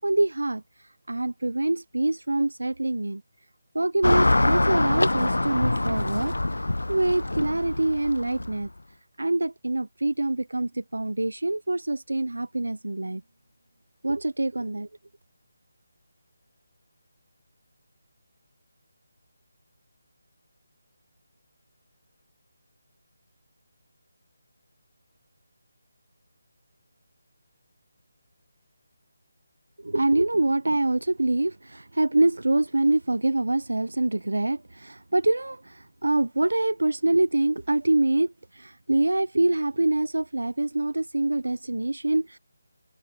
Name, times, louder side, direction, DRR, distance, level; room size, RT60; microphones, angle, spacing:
voice 1, 0.0-3.2 3.7-8.7 9.2-13.2 14.0-14.9 29.8-42.4, right 2 dB, 85° right, 0.4 m, -25 dB
Car passing by / Traffic noise roadway noise, 4.0-8.7, left 2 dB, 85° left, 0.8 m, -24 dB
figure-of-eight pair, 160°, 0 cm